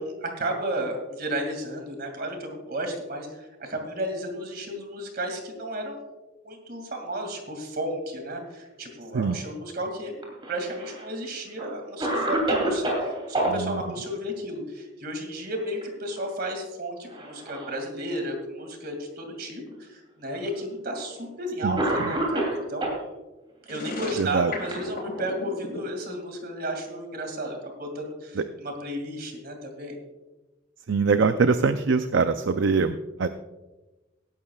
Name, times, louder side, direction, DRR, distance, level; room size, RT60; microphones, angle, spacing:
voice 1, 0.0-6.0 6.4-10.2 10.5-22.9 23.6-30.0, right 1 dB, 50° right, 4 dB, 2.4 m, -33 dB
Cough, 10.2-11.1 11.6-11.7 12.0-13.5 15.4-15.8 16.2-16.3 17.1-17.8 18.6-18.7 19.7-19.8 20.9-21.1 21.8-23.0 24.0-25.4, right 1 dB, 25° right, 3.0 m, -29 dB
voice 2, 13.5-13.8 21.6-22.1 24.2-24.5 28.4-28.5 30.9-33.3, right 4 dB, 70° right, 10 dB, 0.5 m, -23 dB
sound 1, 23.6-25.8, left 2 dB, 50° left, 4.5 m, -34 dB
17.5 x 11.5 x 2.4 m, 1.1 s
head